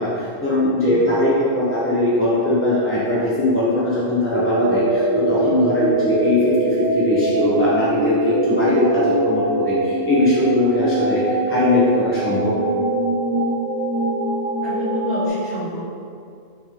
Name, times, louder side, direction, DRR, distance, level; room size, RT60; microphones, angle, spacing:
voice 1, 0.0-12.5, left 1 dB, 10° left, -9 dB, 0.8 m, -20 dB
sound 1, 4.3-15.3, right 2 dB, 70° right, 1.8 m, -22 dB
voice 2, 14.6-15.8, right 2 dB, 35° right, -13 dB, 1.7 m, -30 dB
5.9 x 3.7 x 5.2 m, 2.3 s
omnidirectional pair, 1.3 m